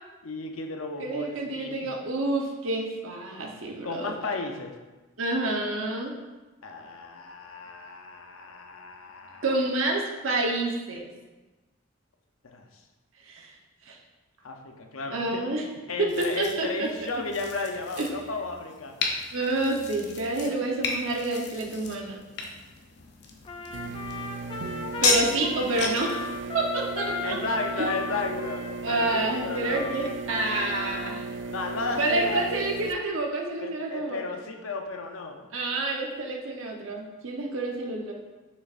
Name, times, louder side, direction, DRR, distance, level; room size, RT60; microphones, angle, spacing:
voice 1, 0.2-1.9 3.8-4.7 6.6-9.5 12.5-12.7 14.4-15.4 15.9-18.9 20.4-20.6 24.9-25.0 27.2-29.9 31.5-32.5 33.6-35.7, left 3 dB, 85° left, 3 dB, 0.7 m, -34 dB
voice 2, 1.0-4.1 5.2-6.1 9.4-11.1 13.2-13.5 13.9-14.0 15.1-15.6 16.0-16.9 18.0-18.1 19.3-22.2 25.0-26.2 26.5-27.4 27.8-27.9 28.3-28.4 28.8-31.3 32.0-34.2 35.5-38.1, right 2 dB, 80° right, 0 dB, 1.0 m, -28 dB
sound 1, 16.1-26.1, left 4 dB, 55° left, 0.7 m, -33 dB
Trumpet, 23.4-31.2, left 4 dB, 25° left, 0.4 m, -37 dB
sound 2, 23.7-32.9, right 4 dB, 60° right, 0.4 m, -36 dB
6.4 x 5.8 x 2.5 m, 1.2 s
head